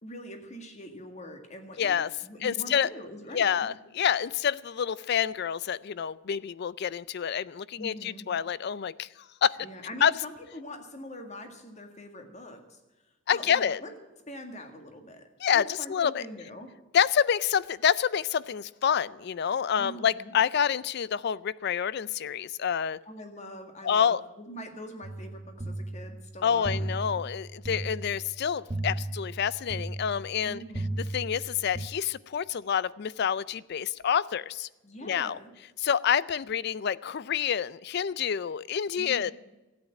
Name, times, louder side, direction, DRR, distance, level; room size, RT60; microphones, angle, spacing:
voice 1, 0.0-3.7 7.8-8.2 9.6-12.8 13.3-13.9 14.3-15.3 15.5-16.7 19.8-20.3 23.1-24.2 24.5-26.8 27.1-27.2 30.4-31.0 34.8-35.5 39.0-39.3, equal, 35° left, 6 dB, 1.8 m, -43 dB
voice 2, 1.8-2.1 2.4-2.9 3.3-9.1 9.4-9.6 10.0-10.2 13.3-13.8 15.4-16.2 16.9-23.0 23.8-24.2 26.4-30.6 31.1-34.7 35.0-35.4 35.8-39.3, left 8 dB, 50° left, 20 dB, 0.4 m, -27 dB
sound 1, 25.0-31.9, right 1 dB, 20° right, 0.5 m, -36 dB
13.5 x 8.9 x 9.0 m, 1.1 s
head